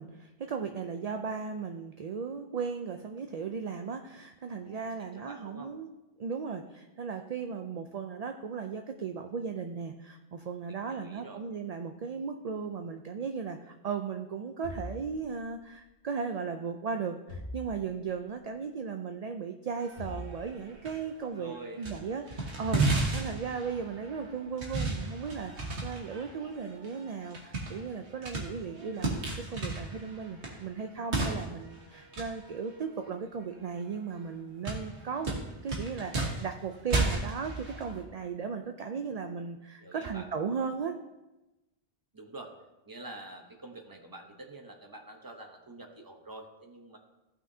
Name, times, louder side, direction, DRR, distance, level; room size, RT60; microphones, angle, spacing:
voice 1, 0.0-5.9 6.2-35.4 35.6-41.0, right 5 dB, 50° right, 5 dB, 0.5 m, -36 dB
voice 2, 4.6-5.7 10.6-11.4 21.3-22.2 39.8-40.3 42.1-42.5 42.9-47.0, right 2 dB, 20° right, 3 dB, 0.9 m, -47 dB
sound 1, 14.6-15.8 17.3-18.2 20.0-21.1 22.6-23.6, left 1 dB, 75° left, 1.5 m, -43 dB
sound 2, 19.7-21.0 21.4-22.0 22.3-33.8 34.2-34.3 34.6-38.0, right 3 dB, 85° right, 1.7 m, -34 dB
15.5 x 5.9 x 2.7 m, 1.0 s
omnidirectional pair, 1.1 m